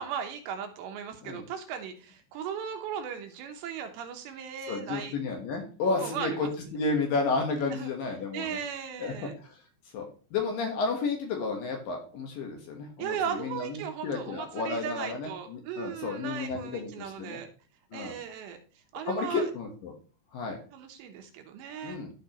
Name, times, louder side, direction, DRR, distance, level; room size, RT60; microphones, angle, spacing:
voice 1, 0.0-5.1 6.0-6.5 7.7-7.9 8.3-9.4 13.0-17.5 17.9-18.6 18.9-19.4 20.7-22.0, right 8 dB, 80° right, 6 dB, 3.1 m, -37 dB
voice 2, 4.7-8.6 9.0-9.1 9.4-9.6 9.9-17.4 17.9-18.1 19.1-19.9 20.3-20.6 21.8-22.1, left 4 dB, 65° left, 2 dB, 2.6 m, -32 dB
13.5 x 5.3 x 3.0 m, 0.38 s
omnidirectional pair, 5.1 m